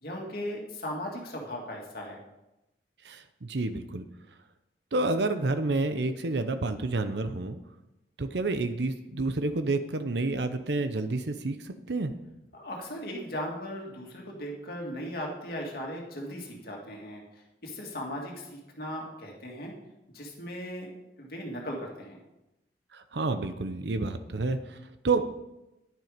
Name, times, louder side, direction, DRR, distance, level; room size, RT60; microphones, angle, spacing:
voice 1, 0.0-2.2 12.5-19.7 20.1-20.9 21.2-22.2, equal, 55° left, -1 dB, 2.5 m, -37 dB
voice 2, 3.0-4.0 4.9-7.6 8.2-12.1 22.9-24.8 25.0-25.2, right 3 dB, 70° right, 10 dB, 0.8 m, -29 dB
10.5 x 9.3 x 5.1 m, 0.93 s
head